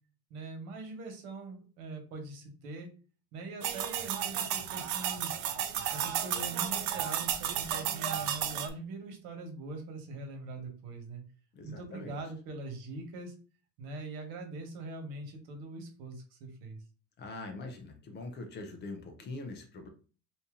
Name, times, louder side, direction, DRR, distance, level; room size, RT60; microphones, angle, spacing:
voice 1, 0.3-2.9 3.3-5.4 5.9-11.2 11.6-13.3 13.8-16.8, right 2 dB, 85° right, 4 dB, 1.2 m, -42 dB
sound 1, 3.6-8.7, right 9 dB, 50° right, 0.4 m, -33 dB
voice 2, 11.6-12.2 17.2-19.9, left 3 dB, 30° left, 4 dB, 0.4 m, -43 dB
2.7 x 2.7 x 3.5 m, 0.37 s
cardioid pair, 175°, 39 cm